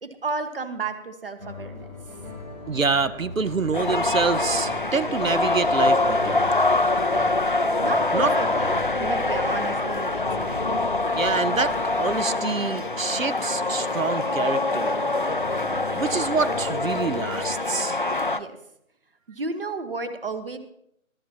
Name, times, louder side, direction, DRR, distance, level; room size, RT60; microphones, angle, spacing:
voice 1, 0.0-1.9 7.8-10.6 18.3-18.6 19.3-20.6, right 3 dB, 45° right, 10 dB, 1.4 m, -32 dB
sound 1, 1.4-17.6, left 2 dB, 90° right, 2.9 m, -40 dB
sound 2, 1.6-12.2, left 3 dB, 20° left, 1.0 m, -42 dB
voice 2, 2.7-6.5 8.1-8.3 11.1-15.0 15.9-18.0, right 4 dB, 70° right, 15 dB, 1.0 m, -26 dB
sound 3, 3.7-18.4, left 2 dB, 40° left, 0.5 m, -24 dB
22.0 x 12.5 x 2.9 m, 0.76 s
figure-of-eight pair, 155°, 41 cm